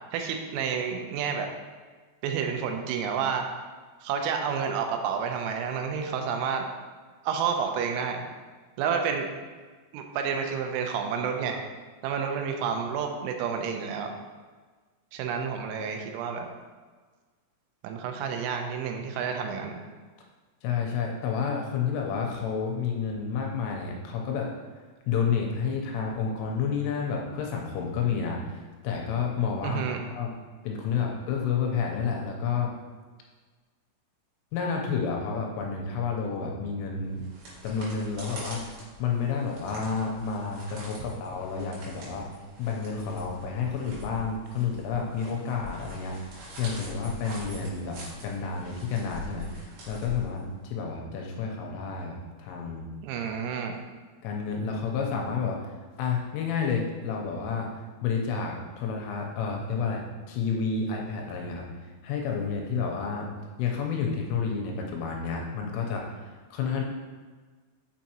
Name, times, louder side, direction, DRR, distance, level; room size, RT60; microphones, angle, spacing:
voice 1, 0.1-1.5 2.2-3.5 4.0-6.7 7.2-8.2 8.8-9.3 9.9-11.6 12.0-14.1 15.1-16.5 17.8-19.8 29.6-30.0 53.0-53.8, right 6 dB, 85° right, 4 dB, 3.3 m, -30 dB
voice 2, 20.6-24.5 25.1-30.3 30.6-32.7 34.5-37.2 37.6-38.6 39.0-42.3 42.6-52.9 54.2-55.7 56.0-61.7 62.0-63.3 63.6-66.8, left 5 dB, 80° left, 1 dB, 3.1 m, -30 dB
sound 1, 37.0-50.8, left 1 dB, 65° right, 3.9 m, -44 dB
7.0 x 6.4 x 2.9 m, 1.4 s
omnidirectional pair, 5.9 m